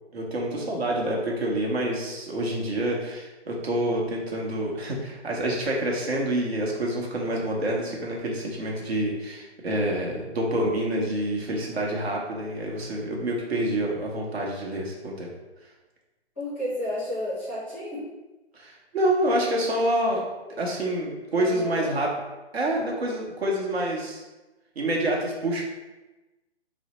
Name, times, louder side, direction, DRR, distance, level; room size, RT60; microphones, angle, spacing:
voice 1, 0.1-15.3 18.5-20.2 20.6-22.1 22.5-24.2 24.8-25.6, right 1 dB, 65° right, -2 dB, 0.9 m, -27 dB
voice 2, 16.4-18.0 21.3-21.9 22.6-23.0, left 1 dB, 10° left, -11 dB, 0.6 m, -32 dB
4.2 x 2.0 x 2.9 m, 1.1 s
hypercardioid pair, 170°, 34 cm